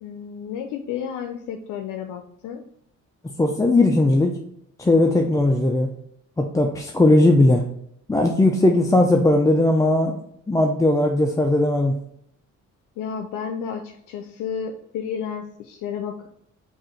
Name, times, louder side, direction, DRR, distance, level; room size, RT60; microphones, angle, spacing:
voice 1, 0.0-2.6 13.0-16.3, left 7 dB, 85° left, 4 dB, 0.5 m, -32 dB
voice 2, 3.4-4.4 4.8-5.9 6.4-7.7 8.1-10.2 10.5-11.9, left 2 dB, 10° left, 2 dB, 0.4 m, -18 dB
4.7 x 2.5 x 4.3 m, 0.72 s
cardioid pair, 90°, 30 cm